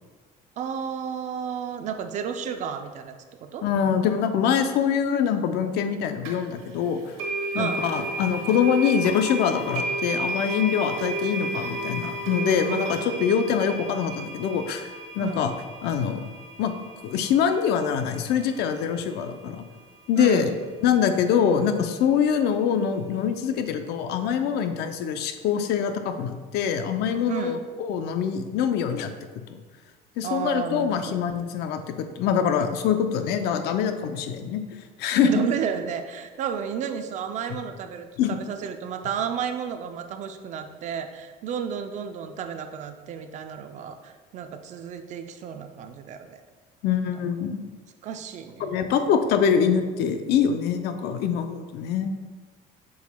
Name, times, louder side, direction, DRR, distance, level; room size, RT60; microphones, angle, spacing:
voice 1, 0.6-3.7 7.5-7.9 12.7-12.9 15.2-15.4 20.2-20.6 27.3-27.6 30.2-31.2 35.2-46.4 47.2-47.3 48.0-48.8, right 7 dB, 40° right, 7 dB, 0.4 m, -32 dB
voice 2, 3.6-7.0 7.5-14.9 15.1-15.5 15.8-16.2 16.6-16.8 17.0-19.6 20.1-20.5 20.8-29.1 30.2-34.6 35.0-35.4 38.2-38.4 46.8-47.6 48.6-52.2, left 7 dB, 65° left, 8 dB, 0.5 m, -24 dB
sound 1, 6.2-6.3 7.2-18.2, right 2 dB, 80° right, 1.2 m, -32 dB
6.9 x 6.3 x 2.2 m, 1.4 s
cardioid pair, 160°, 18 cm